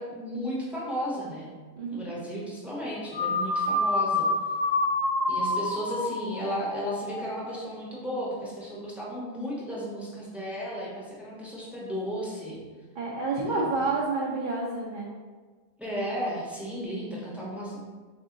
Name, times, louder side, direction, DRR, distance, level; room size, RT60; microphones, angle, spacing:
voice 1, 0.0-1.5 1.9-4.3 5.3-12.6 13.5-13.7 15.8-17.8, equal, ahead, -6 dB, 0.5 m, -34 dB
voice 2, 1.8-2.1 12.9-15.1, right 3 dB, 60° right, -5 dB, 0.5 m, -29 dB
sound 1, 3.1-7.7, left 2 dB, 85° left, 1.0 m, -28 dB
3.5 x 2.6 x 3.7 m, 1.4 s
omnidirectional pair, 1.3 m